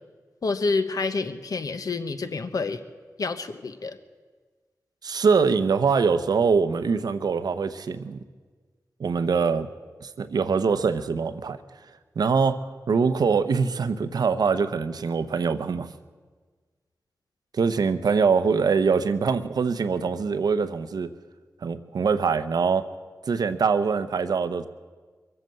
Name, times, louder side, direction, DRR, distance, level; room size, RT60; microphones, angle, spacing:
voice 1, 0.4-2.8 3.2-4.0, left 3 dB, 65° left, 9 dB, 1.1 m, -28 dB
voice 2, 5.0-8.2 9.0-9.7 10.0-11.6 12.2-12.6 12.9-15.9 17.5-21.1 21.6-22.9 23.3-24.7, right 5 dB, 75° right, 11 dB, 0.8 m, -23 dB
23.0 x 8.0 x 7.6 m, 1.4 s
cardioid pair, 40°, 7 cm